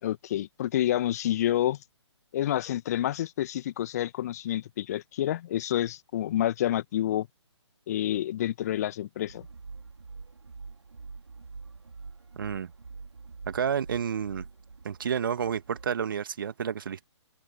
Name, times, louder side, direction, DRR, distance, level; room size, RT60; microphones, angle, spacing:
voice 1, 0.0-1.8 2.3-7.3 7.9-9.5, left 12 dB, 35° left, 2.0 m, -28 dB
sound 1, 9.3-15.9, right 4 dB, 65° right, 4.3 m, -45 dB
voice 2, 12.4-12.7 13.5-14.5 14.8-17.0, right 7 dB, 45° right, 1.9 m, -30 dB
figure-of-eight pair, 135°, 15 cm